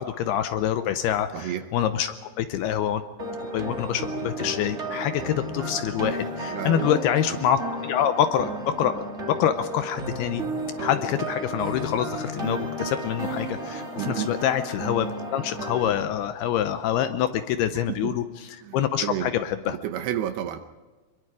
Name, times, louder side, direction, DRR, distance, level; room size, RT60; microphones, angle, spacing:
voice 1, 0.0-3.0 3.5-10.4 10.8-19.8, left 10 dB, 80° left, 10 dB, 2.4 m, -26 dB
voice 2, 1.3-1.7 6.5-6.9 7.3-7.4 14.0-14.3 17.9-18.2 18.6-19.3 19.7-20.6, right 11 dB, 75° right, 9 dB, 2.6 m, -31 dB
sound 1, 3.2-16.0, right 1 dB, 30° right, 1.3 m, -33 dB
24.5 x 23.0 x 4.9 m, 1.3 s
omnidirectional pair, 5.1 m